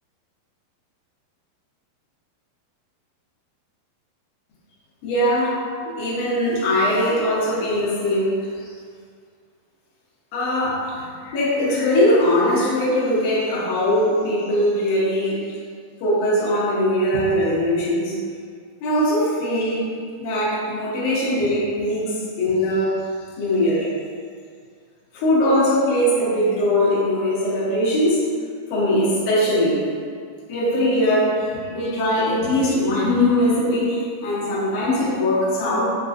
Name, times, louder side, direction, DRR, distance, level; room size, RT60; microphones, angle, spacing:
voice 1, 5.0-5.6 6.0-8.4 10.3-10.9 11.2-15.5 16.0-18.2 18.8-19.8 20.2-23.0 23.4-23.9 25.1-28.3 28.7-29.8 30.5-35.9, left 1 dB, 85° left, -9 dB, 1.4 m, -21 dB
5.8 x 2.5 x 2.4 m, 2.1 s
omnidirectional pair, 4.5 m